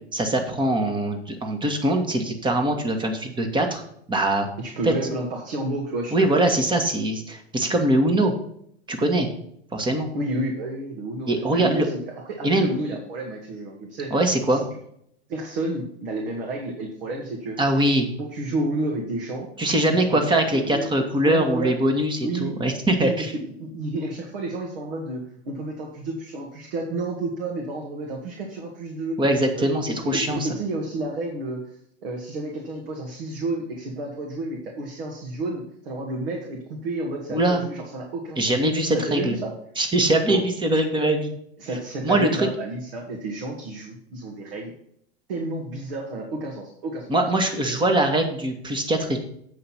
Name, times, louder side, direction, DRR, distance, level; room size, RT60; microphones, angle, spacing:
voice 1, 0.1-3.8 4.1-4.5 4.8-4.9 6.1-8.3 8.9-9.3 9.7-10.1 11.3-11.9 12.4-12.7 14.1-14.6 17.6-18.1 19.6-23.3 29.2-30.5 37.3-37.6 38.4-39.3 39.8-41.4 42.0-42.5 47.1-49.2, right 1 dB, 15° right, 5 dB, 1.6 m, -22 dB
voice 2, 4.6-6.4 10.1-14.1 14.5-14.6 15.3-17.6 18.2-19.5 19.9-20.3 20.5-21.7 22.2-22.5 23.0-29.2 29.5-31.6 32.0-38.6 38.9-39.5 40.3-40.4 41.6-44.7 45.3-47.1, right 2 dB, 60° right, 0 dB, 1.9 m, -31 dB
8.5 x 5.6 x 5.8 m, 0.71 s
figure-of-eight pair, 95°, 32 cm